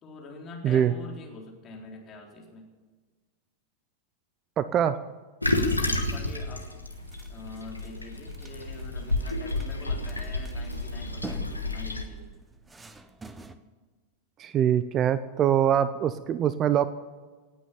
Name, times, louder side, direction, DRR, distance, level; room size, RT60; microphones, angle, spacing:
voice 1, 0.0-2.7 5.8-6.7 7.3-12.3, left 3 dB, 30° left, 0 dB, 3.8 m, -44 dB
voice 2, 0.6-0.9 4.6-5.0 14.4-16.9, right 9 dB, 30° right, 15 dB, 0.6 m, -23 dB
Toilet flush, 5.4-12.0, left 2 dB, 85° left, 1.6 m, -30 dB
sound 1, 6.9-13.6, right 3 dB, 15° right, 1.0 m, -47 dB
18.5 x 9.3 x 7.1 m, 1.4 s
figure-of-eight pair, 90°, 0 cm